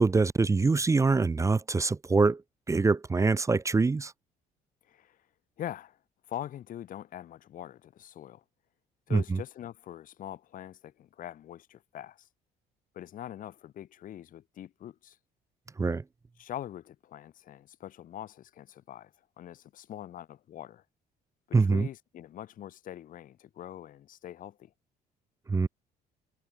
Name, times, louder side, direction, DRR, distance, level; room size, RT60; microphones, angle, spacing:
voice 1, 0.0-2.4 2.7-4.1 9.1-9.4 15.8-16.0 21.5-21.9 25.5-25.7, right 4 dB, 20° right, 0.7 m, -24 dB
voice 2, 4.9-5.2 5.6-6.0 6.3-8.4 9.1-12.3 12.9-15.2 16.4-19.1 19.4-20.8 21.5-24.7, left 11 dB, 55° left, 1.0 m, -43 dB
cardioid pair, 110°, 17 cm